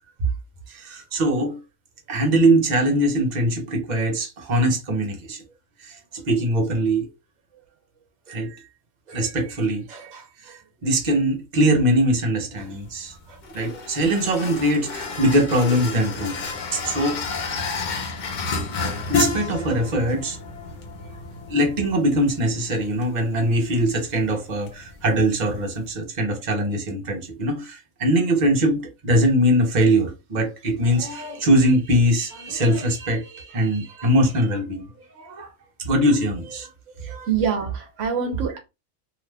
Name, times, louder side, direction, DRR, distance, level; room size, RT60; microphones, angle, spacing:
voice 1, 0.7-1.6 2.1-5.4 5.8-7.1 8.3-8.6 9.1-17.3 17.6-17.7 19.1-20.4 21.5-35.5 35.8-36.7 37.0-37.3, right 1 dB, 40° right, 1.0 m, -22 dB
sound 1, 12.6-25.9, left 4 dB, 50° left, 0.6 m, -32 dB
voice 2, 37.0-38.6, right 7 dB, 75° right, 1.0 m, -25 dB
2.8 x 2.4 x 3.3 m
omnidirectional pair, 1.3 m